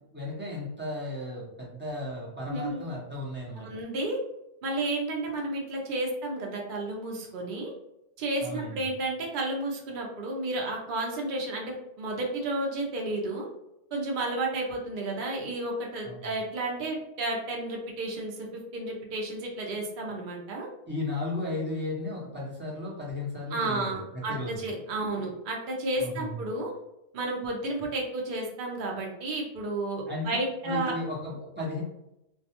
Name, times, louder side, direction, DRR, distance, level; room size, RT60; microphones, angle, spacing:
voice 1, 0.1-3.7 8.4-8.8 16.0-16.3 20.9-24.5 26.0-26.5 30.1-30.4 30.6-31.8, left 2 dB, 10° right, -5 dB, 0.5 m, -35 dB
voice 2, 2.5-2.8 3.6-4.2 4.6-7.7 8.2-13.5 13.9-18.5 18.7-20.7 23.5-26.7 27.1-31.0, right 2 dB, 55° right, -1 dB, 0.7 m, -32 dB
2.3 x 2.2 x 2.8 m, 0.87 s
omnidirectional pair, 1.3 m